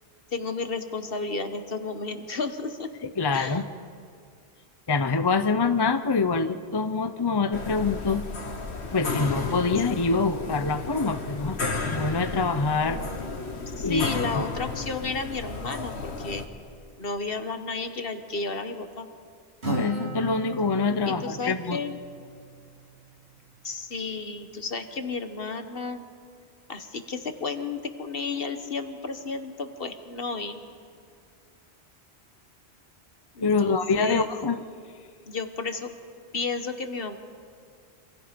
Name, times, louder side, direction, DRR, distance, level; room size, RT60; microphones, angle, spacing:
voice 1, 0.3-2.9 3.3-3.6 12.7-13.3 13.7-16.4 17.0-19.1 21.2-22.0 23.6-26.0 26.7-30.6 33.3-34.3 35.3-35.9 36.3-37.2, left 4 dB, 60° left, 7 dB, 1.6 m, -32 dB
voice 2, 3.0-3.7 4.9-8.2 8.9-11.6 11.8-13.0 13.8-14.0 19.7-21.8 33.4-34.6, left 4 dB, 25° left, 9 dB, 0.7 m, -25 dB
sound 1, 7.5-16.5, left 3 dB, 80° left, 1.8 m, -33 dB
Acoustic guitar, 19.6-23.3, right 3 dB, 80° right, 3.7 m, -36 dB
28.0 x 26.5 x 5.3 m, 2.2 s
omnidirectional pair, 1.1 m